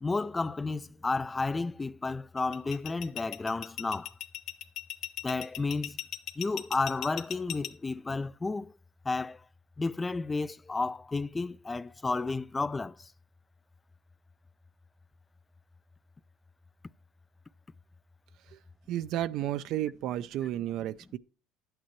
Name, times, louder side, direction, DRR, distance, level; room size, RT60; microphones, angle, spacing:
voice 1, 0.0-4.1 5.2-6.0 6.4-8.7 9.1-9.4 9.8-13.1, left 3 dB, 20° left, 0.3 m, -32 dB
sound 1, 2.4-7.7, left 12 dB, 60° left, 0.9 m, -37 dB
voice 2, 18.9-21.2, right 12 dB, 65° right, 0.4 m, -32 dB
11.5 x 8.8 x 3.0 m
supercardioid pair, 100°, 0 cm